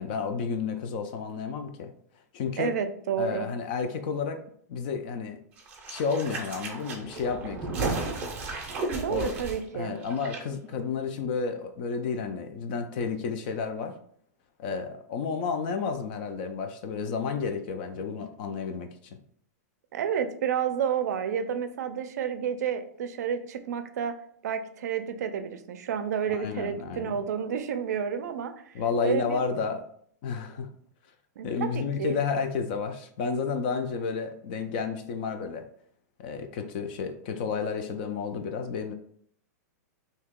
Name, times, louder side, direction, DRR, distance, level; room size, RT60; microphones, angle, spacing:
voice 1, 0.0-1.9 2.3-2.7 3.2-4.4 4.7-5.4 5.9-8.0 9.1-9.4 9.7-14.0 14.6-18.9 26.3-27.2 28.7-29.8 30.2-30.7 31.4-35.6 36.2-38.9, left 5 dB, 35° left, 7 dB, 0.3 m, -31 dB
voice 2, 2.6-3.5 8.9-9.9 19.9-24.1 24.4-28.7 29.0-29.4 31.4-32.2, right 8 dB, 70° right, 9 dB, 0.4 m, -30 dB
sound 1, 5.6-10.4 10.7-10.8, right 3 dB, 15° right, 0.6 m, -34 dB
2.8 x 2.7 x 3.6 m, 0.64 s
supercardioid pair, 175°, 9 cm